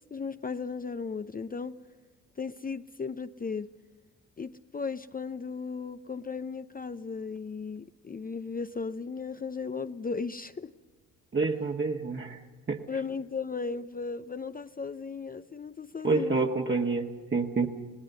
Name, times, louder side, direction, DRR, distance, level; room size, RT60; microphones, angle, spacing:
voice 1, 0.1-1.8 2.4-3.7 4.4-10.7 12.9-16.5, left 5 dB, 20° left, 0.6 m, -36 dB
voice 2, 11.3-12.4 12.7-12.8 16.0-17.7, right 4 dB, 30° right, 1.6 m, -28 dB
27.5 x 18.5 x 6.8 m
hypercardioid pair, 55°, 39 cm